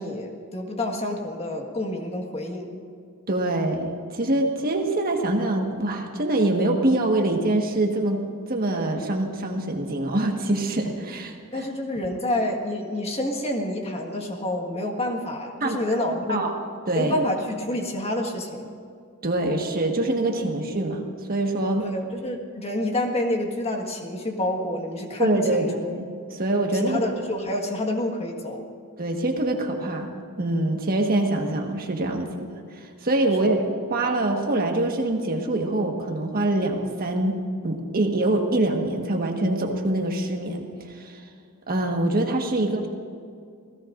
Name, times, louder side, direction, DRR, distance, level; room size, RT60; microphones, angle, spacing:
voice 1, 0.0-2.8 11.5-16.4 16.9-18.7 21.8-25.7 26.7-28.6 33.4-33.6, left 1 dB, 30° left, 2 dB, 1.6 m, -28 dB
voice 2, 3.3-8.2 8.5-11.6 15.6-15.8 16.3-16.6 16.9-17.1 19.2-21.9 25.2-27.0 29.0-30.1 30.4-33.6 33.9-37.4 37.6-41.2 41.7-42.9, right 2 dB, 40° right, 2 dB, 1.5 m, -24 dB
28.0 x 17.0 x 2.6 m, 2.4 s
head